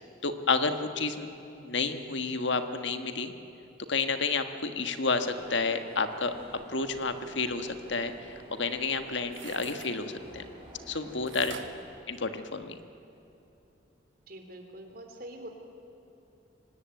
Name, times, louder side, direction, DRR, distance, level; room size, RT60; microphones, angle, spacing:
voice 1, 0.2-1.3 1.6-3.3 3.9-6.3 6.7-10.5 10.9-11.5 12.1-12.8, left 4 dB, 70° left, 8 dB, 1.5 m, -30 dB
sound 1, 5.1-11.8, equal, 25° right, 7.6 m, -50 dB
sound 2, 9.2-9.9 11.3-12.8 13.3-13.4, right 7 dB, 85° right, 1.5 m, -47 dB
voice 2, 14.3-15.5, right 1 dB, 50° right, 4 dB, 3.4 m, -44 dB
24.5 x 19.0 x 9.2 m, 2.9 s
head